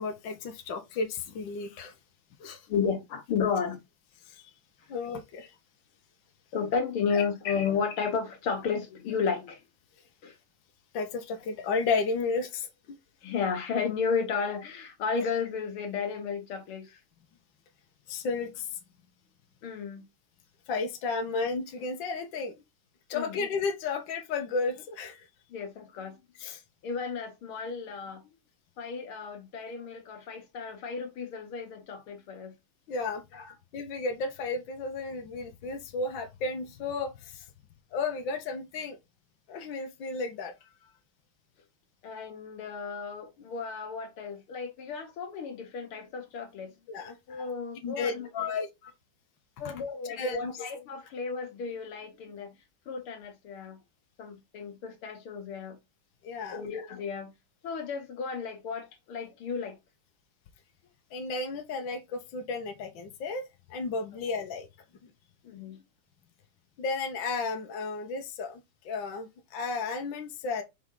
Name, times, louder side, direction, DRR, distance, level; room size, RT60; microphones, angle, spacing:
voice 1, 0.0-1.9 2.4-2.7 4.3-4.5 4.9-5.5 7.1-7.2 10.9-13.0 18.1-18.8 20.7-22.5 23.1-25.3 26.4-26.6 32.9-33.2 33.7-37.4 37.9-39.0 39.5-40.5 46.9-47.2 47.8-48.7 50.2-50.5 56.2-56.6 61.1-64.7 65.0-65.1 66.8-70.6, left 4 dB, 65° left, 1.7 m, -33 dB
voice 2, 2.7-3.8 6.5-9.6 10.2-10.4 13.2-17.0 19.6-20.0 23.1-23.4 25.5-26.2 26.8-28.2 28.8-32.5 33.3-33.5 42.0-46.8 47.3-48.3 49.6-52.5 52.9-53.8 54.2-55.8 56.5-57.3 57.6-59.8 65.4-65.8, left 6 dB, 80° left, 2.2 m, -33 dB
5.9 x 4.7 x 3.9 m
omnidirectional pair, 2.3 m